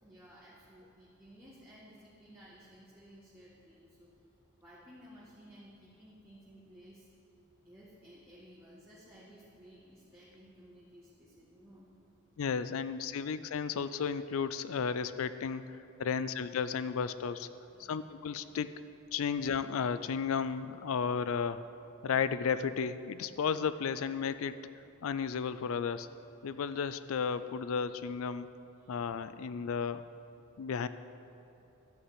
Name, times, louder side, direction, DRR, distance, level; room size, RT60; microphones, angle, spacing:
voice 1, 0.0-4.1 4.6-7.1 7.6-11.9 17.7-18.2 28.8-29.0, equal, 10° right, -8 dB, 1.8 m, -56 dB
voice 2, 12.4-17.5 17.8-18.7 19.1-21.6 22.0-24.6 25.0-26.1 26.4-28.5 28.9-30.1 30.6-30.9, left 6 dB, 65° left, 14 dB, 0.4 m, -33 dB
13.0 x 5.7 x 9.3 m, 2.9 s
head